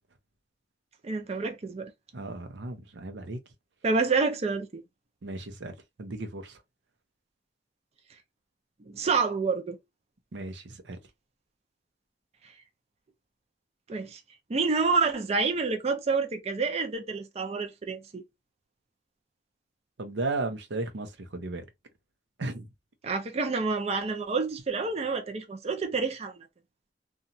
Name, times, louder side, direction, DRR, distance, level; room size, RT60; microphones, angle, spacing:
voice 1, 1.0-1.9 3.8-4.8 8.9-9.8 13.9-14.2 14.5-18.2 23.0-26.4, right 4 dB, 35° right, 0.5 m, -28 dB
voice 2, 2.1-3.4 5.2-6.6 10.3-11.0 20.0-21.6 22.4-22.7, right 2 dB, 85° right, 0.6 m, -35 dB
2.9 x 2.3 x 2.6 m
head